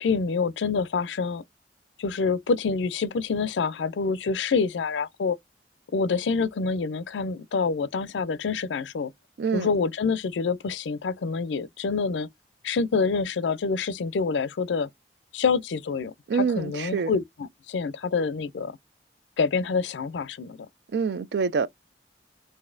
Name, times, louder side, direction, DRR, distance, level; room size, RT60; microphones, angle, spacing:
voice 1, 0.0-1.4 2.0-5.4 5.9-9.1 9.5-12.3 12.6-14.9 15.3-18.8 19.4-20.6, left 5 dB, 85° left, 0.4 m, -27 dB
voice 2, 9.4-9.7 16.3-17.1 20.9-21.7, right 5 dB, 65° right, 0.4 m, -26 dB
4.0 x 2.6 x 2.5 m
head